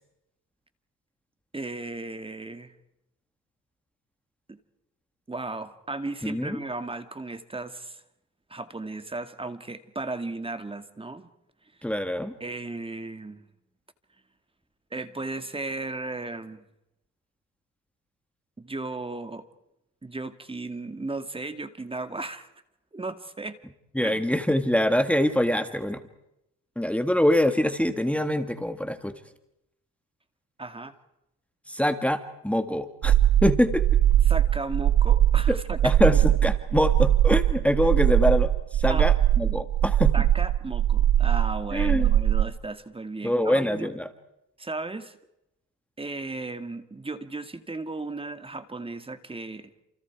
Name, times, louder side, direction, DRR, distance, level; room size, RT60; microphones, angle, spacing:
voice 1, 1.5-2.7 4.5-4.6 5.3-8.0 8.5-11.3 11.8-11.9 12.4-13.5 14.9-16.7 18.6-19.5 20.0-22.5 22.9-23.6 24.0-24.2 30.6-31.0 34.3-36.2 38.9-39.1 40.1-43.9 44.6-45.2 46.0-49.7, right 2 dB, 20° right, 10 dB, 2.0 m, -35 dB
voice 2, 6.2-6.6 11.8-12.4 24.0-26.0 26.8-29.1 31.7-33.1 33.4-33.9 35.5-35.6 35.8-40.1 41.7-42.1 43.2-44.1, equal, 5° left, 9 dB, 1.8 m, -24 dB
sound 1, 33.0-42.5, right 11 dB, 65° right, 1.0 m, -21 dB
29.5 x 28.0 x 4.7 m, 0.84 s
cardioid pair, 90°, 30 cm